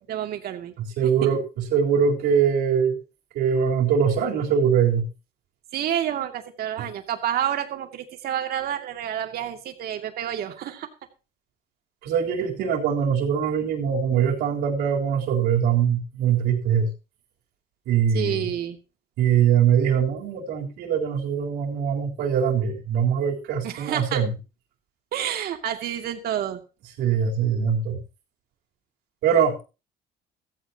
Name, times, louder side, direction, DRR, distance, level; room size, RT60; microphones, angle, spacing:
voice 1, 0.1-0.7 1.0-1.3 5.7-10.9 18.1-18.8 23.6-24.2 25.1-26.6, right 10 dB, 65° right, 5 dB, 2.5 m, -29 dB
voice 2, 0.8-3.0 3.3-5.1 6.8-6.9 12.0-16.9 17.9-18.5 19.2-24.3 27.0-28.0 29.2-29.6, right 7 dB, 85° right, 0 dB, 3.9 m, -22 dB
15.5 x 14.5 x 2.9 m, 0.32 s
cardioid pair, 110°, 17 cm